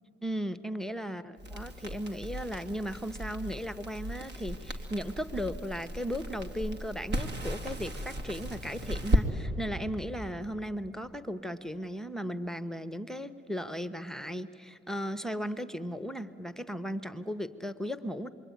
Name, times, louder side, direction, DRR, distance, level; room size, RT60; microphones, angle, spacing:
voice 1, 0.2-18.3, equal, ahead, 11 dB, 0.8 m, -36 dB
Crackle, 1.4-9.3, equal, 60° right, 2.5 m, -35 dB
27.5 x 23.0 x 9.3 m, 2.6 s
cardioid pair, 90°, 20 cm